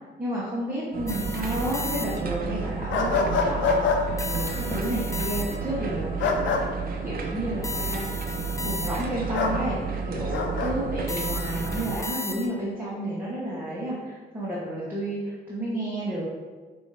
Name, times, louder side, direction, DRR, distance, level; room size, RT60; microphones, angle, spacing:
voice 1, 0.2-6.5 7.0-8.0 8.6-9.8 10.1-16.2, right 1 dB, 10° right, -9 dB, 1.1 m, -31 dB
sound 1, 0.9-12.0, right 5 dB, 50° right, 0.6 m, -31 dB
sound 2, 1.1-2.5 4.2-5.8 7.6-9.3 11.1-12.8, left 2 dB, 15° left, 0.3 m, -35 dB
sound 3, 2.9-4.0 6.2-6.6 9.3-9.6 10.3-10.7, left 4 dB, 75° left, 0.6 m, -24 dB
5.1 x 2.7 x 3.2 m, 1.4 s
cardioid pair, 90°, 20 cm